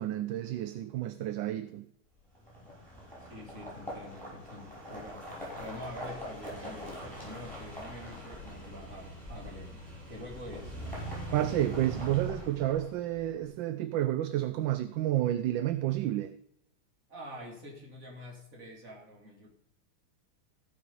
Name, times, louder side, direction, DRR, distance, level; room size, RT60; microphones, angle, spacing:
voice 1, 0.0-1.9 11.3-16.4, right 13 dB, 75° right, 1.2 m, -30 dB
sound 1, 2.3-13.2, equal, 5° left, 5.6 m, -42 dB
voice 2, 3.2-10.8 17.1-19.5, equal, 40° right, 3.1 m, -46 dB
15.5 x 5.9 x 5.3 m
omnidirectional pair, 2.3 m